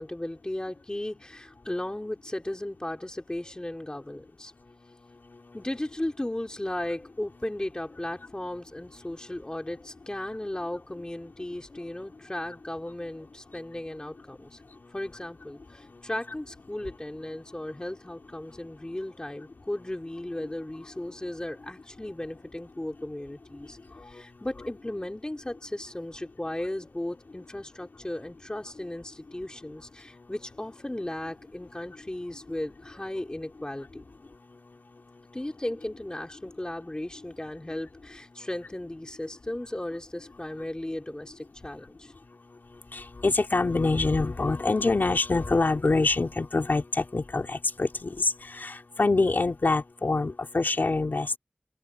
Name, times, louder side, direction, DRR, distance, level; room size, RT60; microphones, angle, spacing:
voice 1, 0.0-4.5 5.5-14.6 14.9-23.8 24.1-34.0 35.3-42.1, left 1 dB, 25° left, 3.9 m, -36 dB
voice 2, 42.9-51.4, left 3 dB, 70° left, 3.1 m, -25 dB
open air
wide cardioid pair, 70°, 3 cm